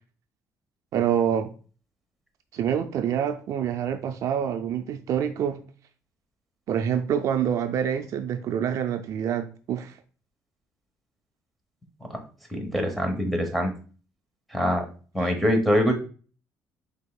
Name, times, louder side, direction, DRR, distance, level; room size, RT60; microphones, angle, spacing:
voice 1, 0.9-1.5 2.5-5.6 6.7-9.9 15.2-15.3, right 9 dB, 60° right, 0.4 m, -26 dB
voice 2, 12.5-13.7 14.5-14.8 15.1-15.9, equal, ahead, 1.0 m, -24 dB
5.4 x 3.4 x 2.3 m
cardioid pair, 125°, 6 cm